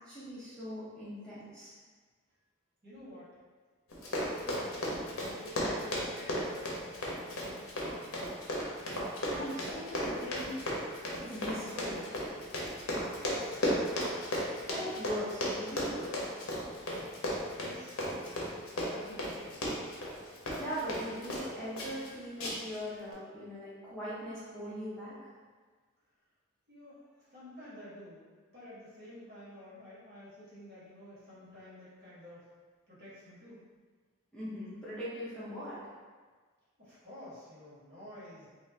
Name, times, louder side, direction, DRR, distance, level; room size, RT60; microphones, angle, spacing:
voice 1, 0.0-1.7 9.3-10.6 11.2-12.1 14.7-16.1 20.5-25.3 34.3-35.8, equal, 5° left, -12 dB, 0.6 m, -40 dB
voice 2, 2.8-3.3 4.1-8.1 13.2-14.0 17.5-18.0 18.7-19.7 26.7-32.5 32.9-33.6 36.8-38.5, left 1 dB, 50° right, -11 dB, 1.3 m, -50 dB
Run, 3.9-21.5 21.8-22.1 22.4-22.8 23.1-23.2, left 1 dB, 90° left, 0.7 m, -35 dB
2.5 x 2.4 x 3.3 m, 1.5 s
head